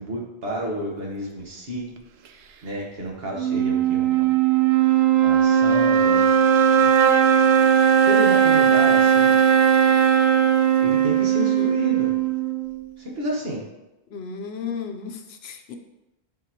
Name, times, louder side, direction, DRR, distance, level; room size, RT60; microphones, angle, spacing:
voice 1, 0.0-1.8 2.6-4.2 5.2-6.3 6.7-6.9 8.0-9.4 10.8-12.1 13.0-13.6, equal, 70° right, -1 dB, 1.6 m, -31 dB
sound 1, 3.4-12.8, right 8 dB, 85° right, 0.8 m, -18 dB
voice 2, 11.4-11.7 14.1-15.8, left 6 dB, 75° left, 6 dB, 0.9 m, -34 dB
9.6 x 4.5 x 3.0 m, 0.96 s
omnidirectional pair, 1.1 m